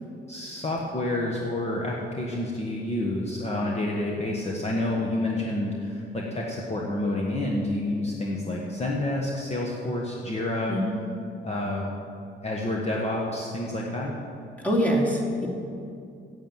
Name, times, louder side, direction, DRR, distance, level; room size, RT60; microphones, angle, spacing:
voice 1, 0.3-10.8 11.4-11.8 12.4-14.1, left 1 dB, 35° left, -2 dB, 1.4 m, -29 dB
voice 2, 14.6-15.5, equal, 5° left, -3 dB, 2.6 m, -24 dB
9.0 x 7.7 x 9.0 m, 2.5 s
cardioid pair, 90°, 20 cm